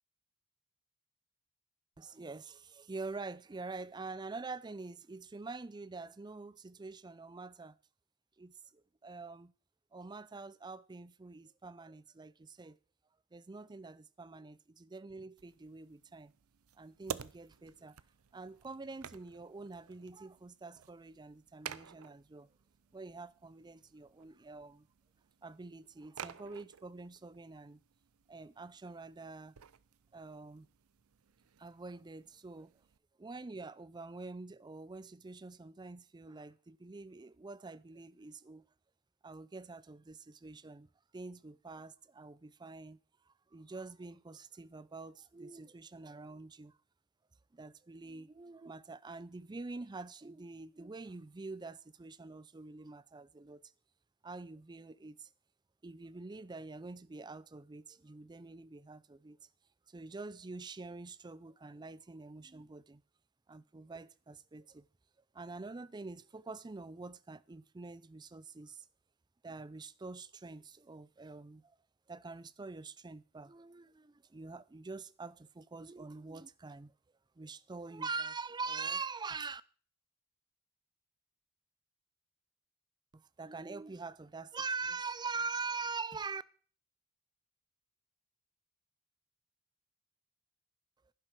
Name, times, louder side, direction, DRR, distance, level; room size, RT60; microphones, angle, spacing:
voice 1, 2.0-7.8 8.4-9.5 9.9-12.8 13.3-16.3 16.8-18.0 18.3-22.5 22.9-24.9 25.4-27.8 28.3-29.5 30.1-30.7 31.6-32.7 33.2-38.6 39.2-43.0 43.3-46.7 47.5-53.6 54.2-55.3 55.8-59.4 59.9-63.0 63.5-64.9 65.3-68.9 69.4-71.8 72.1-76.9 77.4-79.6 83.1-86.4, right 4 dB, 20° right, 0.4 m, -45 dB
sound 1, 15.4-33.0, right 8 dB, 75° right, 0.6 m, -52 dB
11.5 x 11.0 x 4.6 m
head